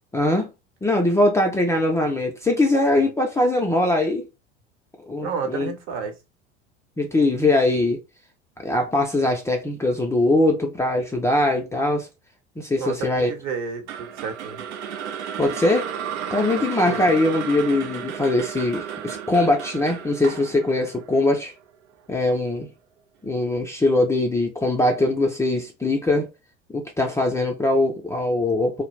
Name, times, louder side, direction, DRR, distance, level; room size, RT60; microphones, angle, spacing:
voice 1, 0.1-0.5 0.8-4.3 5.1-5.7 7.0-8.0 8.6-12.1 12.6-13.3 15.4-15.9 16.3-21.5 22.1-22.7 23.2-26.3 26.7-28.8, left 2 dB, 10° left, 0.4 m, -21 dB
voice 2, 5.2-6.2 12.8-14.6 16.5-17.1, right 5 dB, 50° right, 0.9 m, -31 dB
sound 1, 13.9-22.1, right 8 dB, 75° right, 0.5 m, -33 dB
2.3 x 2.0 x 3.1 m
figure-of-eight pair, 75°, 34 cm